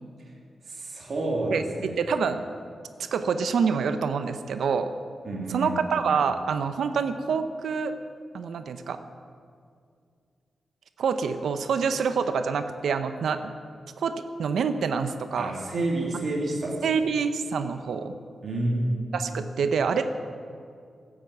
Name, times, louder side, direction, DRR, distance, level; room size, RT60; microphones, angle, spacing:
voice 1, 0.7-2.0 5.2-5.8 15.4-16.7 18.4-19.0, right 2 dB, 45° right, -3 dB, 3.2 m, -29 dB
voice 2, 1.5-2.4 3.1-4.9 5.5-7.9 8.3-9.0 11.0-13.5 14.0-14.1 14.4-15.5 16.8-18.1 19.1-20.1, right 6 dB, 80° right, 9 dB, 0.7 m, -26 dB
15.5 x 8.9 x 7.9 m, 2.3 s
wide cardioid pair, 165°, 0 cm